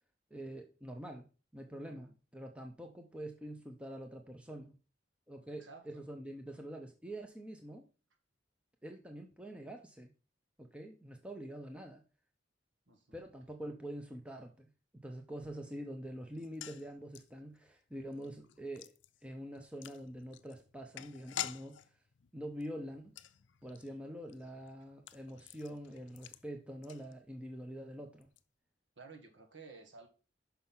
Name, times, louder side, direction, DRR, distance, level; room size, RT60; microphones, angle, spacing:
voice 1, 0.3-1.3 1.5-4.8 5.3-7.8 8.8-10.1 10.6-12.0 13.1-18.9 19.2-21.9 22.3-23.1 23.6-28.3, right 1 dB, 5° right, 0.7 m, -45 dB
voice 2, 1.8-2.1 5.6-6.0 12.9-13.2 29.0-30.1, right 4 dB, 80° right, 1.7 m, -54 dB
sound 1, 16.3-27.6 27.8-27.9 28.2-28.4, left 11 dB, 80° left, 0.5 m, -49 dB
6.0 x 5.6 x 5.6 m
head